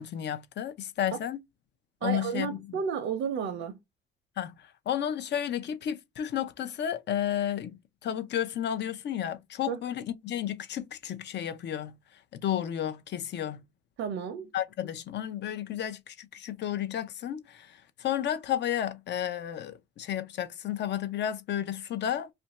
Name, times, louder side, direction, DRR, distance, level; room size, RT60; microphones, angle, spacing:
voice 1, 0.0-1.4 2.0-2.6 4.4-7.8 8.0-12.0 12.3-13.6 14.5-22.3, left 10 dB, 60° left, 0.6 m, -32 dB
voice 2, 2.0-3.8 9.7-9.8 14.0-14.5, right 7 dB, 80° right, 0.6 m, -32 dB
2.5 x 2.2 x 4.0 m
cardioid pair, 90°, 20 cm